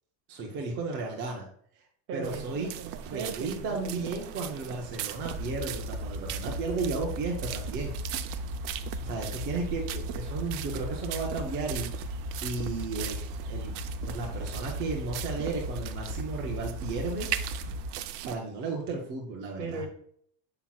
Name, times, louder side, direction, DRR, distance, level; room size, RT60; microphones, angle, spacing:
voice 1, 0.3-1.5 2.1-2.7 3.0-8.0 9.0-12.1 12.4-13.2 13.5-13.7 14.0-17.3 18.3-19.8, right 3 dB, 25° right, 0 dB, 0.5 m, -34 dB
voice 2, 2.1-4.1 19.6-19.9, right 4 dB, 45° right, 5 dB, 1.0 m, -38 dB
sound 1, 2.2-18.4, right 10 dB, 80° right, 0.6 m, -39 dB
sound 2, 5.2-17.9, left 1 dB, 25° left, 1.2 m, -37 dB
7.2 x 5.7 x 2.3 m, 0.64 s
cardioid pair, 180°, 49 cm